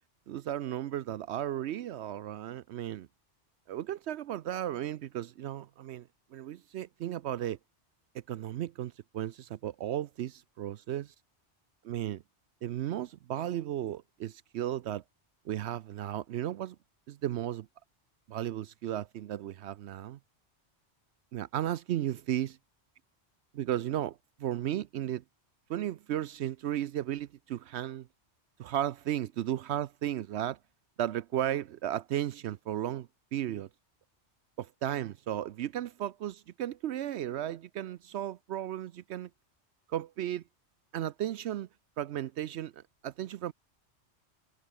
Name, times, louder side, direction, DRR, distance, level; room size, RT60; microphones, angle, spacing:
voice 1, 0.3-3.1 3.7-7.6 8.1-11.1 11.8-12.2 12.6-15.0 15.4-16.8 17.1-17.7 18.3-20.2 21.3-22.5 23.5-25.2 25.7-28.1 28.6-30.6 31.0-33.7 34.6-39.3 39.9-40.4 40.9-41.7 42.0-43.5, right 12 dB, 75° right, 0.8 m, -35 dB
omnidirectional pair, 1.2 m